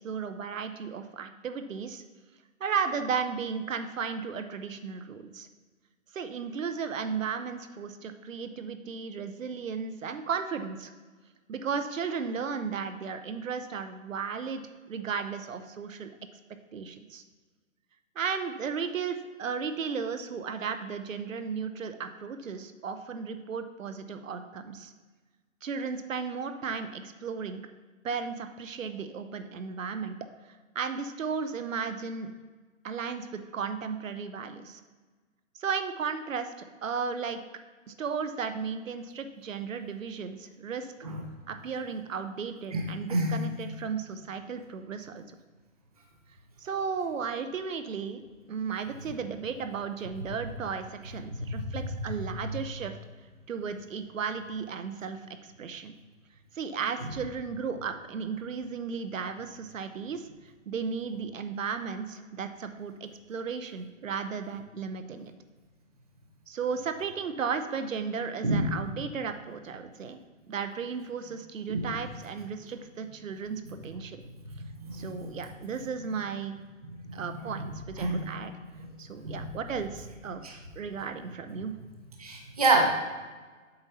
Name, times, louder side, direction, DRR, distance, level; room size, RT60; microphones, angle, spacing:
voice 1, 0.0-2.0 2.6-5.5 6.1-10.9 11.5-14.6 14.9-16.1 16.7-17.2 18.2-24.9 25.6-27.6 28.0-30.2 30.7-32.3 32.8-34.8 35.5-37.4 37.9-40.9 41.5-45.4 46.6-48.2 48.5-53.0 53.5-55.2 55.6-55.9 56.5-60.3 60.7-65.3 66.5-70.2 70.5-74.2 74.9-76.6 77.1-78.5 79.0-81.8, right 6 dB, 70° right, 9 dB, 0.7 m, -35 dB
voice 2, 42.7-43.4 51.3-51.7 52.4-52.6 68.4-68.6 71.7-71.9 74.6-75.2 77.1-77.7 78.0-78.2 78.7-78.8 79.2-79.5 80.4-80.5 82.2-82.9, right 2 dB, 30° right, 1 dB, 0.6 m, -28 dB
7.8 x 5.5 x 4.1 m, 1.4 s
hypercardioid pair, 175°, 40 cm